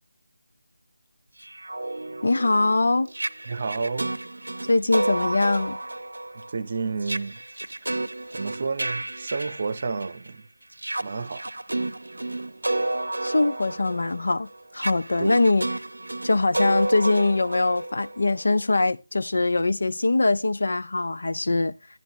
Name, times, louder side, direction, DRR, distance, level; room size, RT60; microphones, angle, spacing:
sound 1, 1.4-10.3 10.7-18.5, right 2 dB, 75° right, 0.6 m, -31 dB
voice 1, 2.2-3.1 4.7-5.8 13.2-15.7 16.2-21.7, left 2 dB, 60° left, 0.6 m, -22 dB
voice 2, 3.5-4.2 6.3-7.4 8.3-10.4 11.0-11.4 15.2-15.4, right 4 dB, 40° right, 0.7 m, -30 dB
11.5 x 10.5 x 3.1 m
figure-of-eight pair, 160°, 0 cm